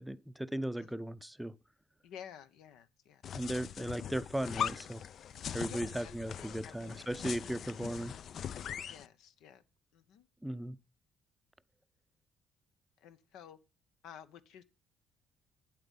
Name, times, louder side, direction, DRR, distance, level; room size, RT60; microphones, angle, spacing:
voice 1, 0.0-1.6 3.3-5.0 5.5-8.1 10.4-10.8, right 1 dB, 5° right, 0.5 m, -37 dB
voice 2, 2.0-3.2 5.4-7.4 8.9-9.6 9.9-10.3 13.0-13.6 14.0-14.6, left 9 dB, 80° left, 0.9 m, -53 dB
sound 1, 3.2-9.1, left 8 dB, 60° left, 0.4 m, -41 dB
8.8 x 7.8 x 5.4 m
cardioid pair, 80°, 0 cm